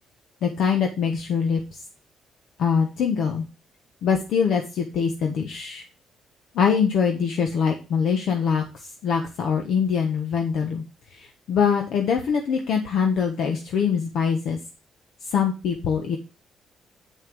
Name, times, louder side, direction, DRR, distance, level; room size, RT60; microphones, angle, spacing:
voice 1, 0.4-1.6 2.6-3.4 4.0-5.8 6.5-8.6 9.0-10.8 11.1-14.6 15.3-16.2, left 6 dB, 75° left, 3 dB, 1.2 m, -23 dB
7.9 x 5.7 x 4.7 m, 0.30 s
cardioid pair, 90°, 0 cm